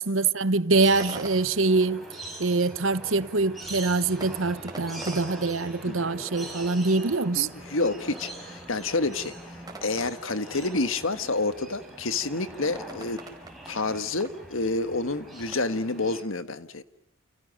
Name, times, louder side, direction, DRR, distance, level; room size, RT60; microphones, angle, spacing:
voice 1, 0.0-2.0 2.4-7.5, right 3 dB, 70° right, 1.1 m, -24 dB
sound 1, 0.7-16.2, right 1 dB, ahead, 6.4 m, -43 dB
sound 2, 0.7-15.6, right 2 dB, 20° right, 4.5 m, -48 dB
voice 2, 7.3-9.3 9.8-13.2 13.7-16.8, left 3 dB, 70° left, 1.6 m, -28 dB
30.0 x 29.5 x 6.5 m
head